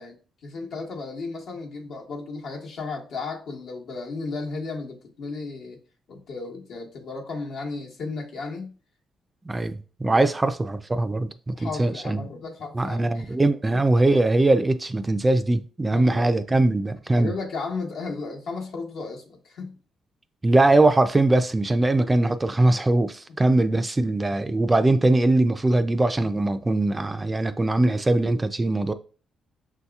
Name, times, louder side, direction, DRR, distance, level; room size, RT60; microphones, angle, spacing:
voice 1, 0.0-5.8 6.1-8.7 10.1-10.3 11.5-13.3 13.7-13.8 15.9-16.3 17.1-19.7, left 4 dB, 70° left, 1.1 m, -34 dB
voice 2, 9.5-12.2 12.7-17.3 20.4-28.9, right 2 dB, 20° right, 0.3 m, -21 dB
5.8 x 2.8 x 2.3 m
cardioid pair, 90°, 0 cm